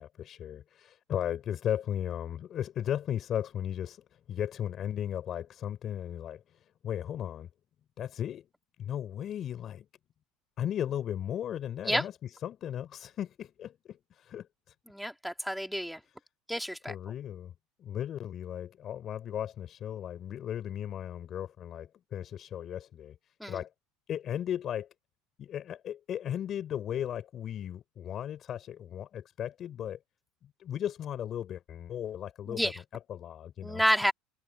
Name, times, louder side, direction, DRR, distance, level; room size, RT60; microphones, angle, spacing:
voice 1, 0.0-7.5 8.0-8.5 8.8-9.9 10.6-14.7 16.1-16.2 16.9-17.5 17.8-23.7 24.1-24.9 25.4-30.0 30.4-33.8, left 10 dB, 45° left, 4.9 m, -36 dB
voice 2, 14.9-16.0 16.5-16.9 23.4-23.6 32.5-32.8 33.6-34.1, equal, ahead, 3.0 m, -29 dB
supercardioid pair, 95°, 0 cm